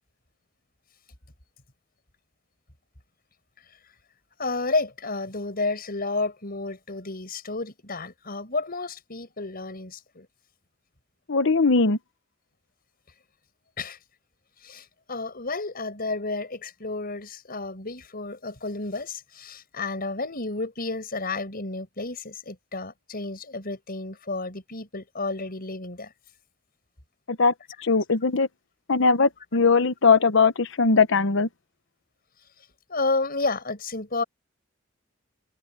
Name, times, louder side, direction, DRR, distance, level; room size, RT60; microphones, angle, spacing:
voice 1, 4.4-10.3 13.8-14.0 14.6-26.1 32.9-34.2, left 3 dB, 50° left, 6.2 m, -31 dB
voice 2, 11.3-12.0 27.3-27.5 27.8-28.5 28.9-31.5, left 4 dB, 70° left, 0.9 m, -20 dB
head